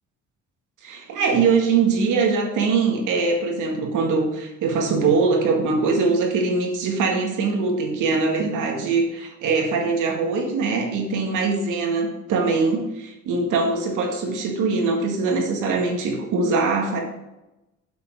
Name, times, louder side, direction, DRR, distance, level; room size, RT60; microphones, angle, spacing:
voice 1, 0.8-17.0, right 4 dB, 85° right, 1 dB, 1.9 m, -22 dB
8.2 x 6.0 x 4.6 m, 0.96 s
cardioid pair, 90°, 30 cm